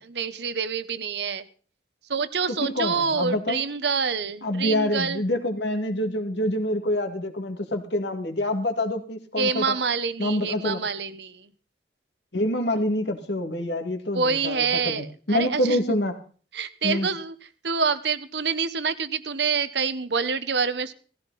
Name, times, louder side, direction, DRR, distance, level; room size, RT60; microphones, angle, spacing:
voice 1, 0.1-1.4 2.1-5.2 9.4-11.5 14.1-15.8 16.5-17.3 17.6-20.9, right 5 dB, 75° right, 13 dB, 1.1 m, -27 dB
voice 2, 2.6-3.6 4.4-9.8 10.2-10.8 12.3-16.2 16.8-17.1, left 1 dB, 80° left, 5 dB, 2.3 m, -26 dB
17.5 x 14.5 x 4.2 m, 0.41 s
head